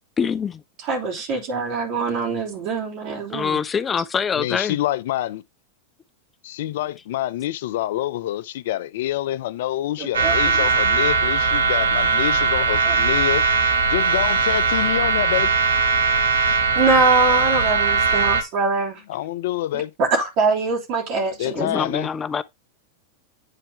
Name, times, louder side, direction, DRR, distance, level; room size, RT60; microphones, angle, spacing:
voice 1, 0.2-0.6 3.3-4.8 21.5-22.4, left 6 dB, 20° left, 0.6 m, -24 dB
voice 2, 0.8-3.6 10.0-10.6 12.8-12.9 16.7-19.0 20.0-21.8, right 3 dB, 50° right, 3.0 m, -23 dB
voice 3, 4.4-5.4 6.4-13.4 13.9-15.5 19.1-19.9 21.2-22.1, left 14 dB, 65° left, 0.6 m, -26 dB
sound 1, 10.1-18.4, right 4 dB, 80° right, 1.4 m, -19 dB
9.2 x 4.4 x 3.2 m
hypercardioid pair, 95°, 0 cm